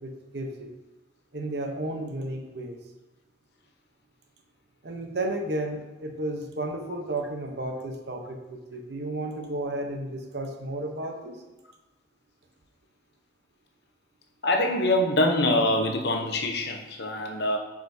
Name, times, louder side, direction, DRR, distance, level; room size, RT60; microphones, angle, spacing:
voice 1, 0.0-0.7 1.3-2.8 4.8-11.4, right 1 dB, 60° right, 3 dB, 0.8 m, -33 dB
voice 2, 14.4-17.6, left 1 dB, 60° left, 3 dB, 0.8 m, -24 dB
7.7 x 5.0 x 2.7 m, 1.1 s
head